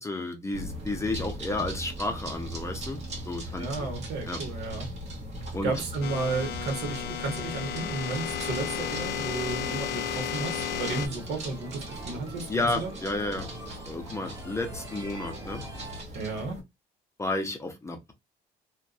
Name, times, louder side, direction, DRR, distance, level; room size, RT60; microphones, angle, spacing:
voice 1, 0.0-3.0 3.3-3.9 4.3-4.4 5.5-5.8 12.5-13.5 13.8-15.6 17.2-18.1, left 2 dB, 15° left, 0.5 m, -32 dB
sound 1, 0.5-16.6, equal, 40° right, 1.0 m, -39 dB
voice 2, 3.6-4.9 5.6-12.9 16.1-16.6, right 3 dB, 70° right, 1.1 m, -33 dB
sound 2, 6.0-11.1, left 9 dB, 70° left, 0.4 m, -33 dB
sound 3, 10.4-16.0, right 2 dB, 20° right, 1.2 m, -45 dB
2.5 x 2.2 x 2.3 m
cardioid pair, 110°, 17 cm